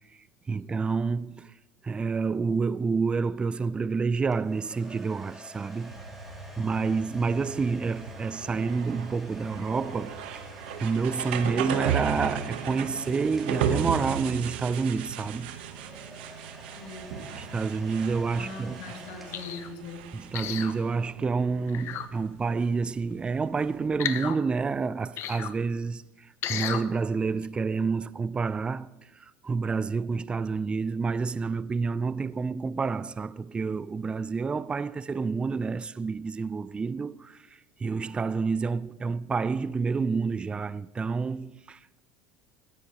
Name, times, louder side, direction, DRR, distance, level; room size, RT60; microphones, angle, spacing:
voice 1, 0.5-1.5 1.8-6.0 6.6-10.5 10.8-15.5 17.4-18.8 20.1-28.9 29.2-37.5 37.8-42.0, right 4 dB, 20° right, 0.4 m, -29 dB
sound 1, 4.3-14.4 15.5-20.2, right 1 dB, ahead, 3.3 m, -49 dB
sound 2, 5.9-23.9, right 8 dB, 85° right, 1.1 m, -36 dB
voice 2, 16.7-17.1 18.4-20.0, left 3 dB, 85° left, 2.3 m, -41 dB
sound 3, 19.3-19.7 20.3-20.8 21.7-22.1 24.0-24.4 25.2-25.5 26.4-26.8 27.4-27.5, left 10 dB, 55° left, 0.8 m, -33 dB
16.0 x 10.5 x 3.0 m
supercardioid pair, 105°, 5 cm